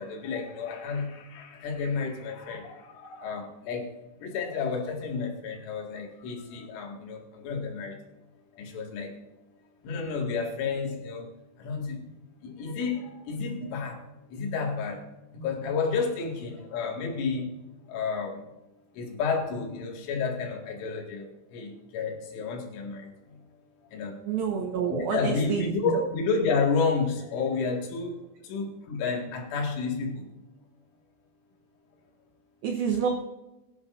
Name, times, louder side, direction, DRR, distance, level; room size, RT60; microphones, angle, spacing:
voice 1, 0.0-3.9 4.2-8.0 8.5-9.2 9.8-11.3 11.6-15.0 15.3-17.5 17.9-18.5 18.9-23.4 23.9-24.2 24.9-30.3, left 5 dB, 75° left, 1 dB, 4.4 m, -31 dB
voice 2, 24.3-26.1 32.6-33.1, right 7 dB, 90° right, 3 dB, 2.1 m, -28 dB
22.0 x 11.0 x 2.6 m, 1.0 s
omnidirectional pair, 5.7 m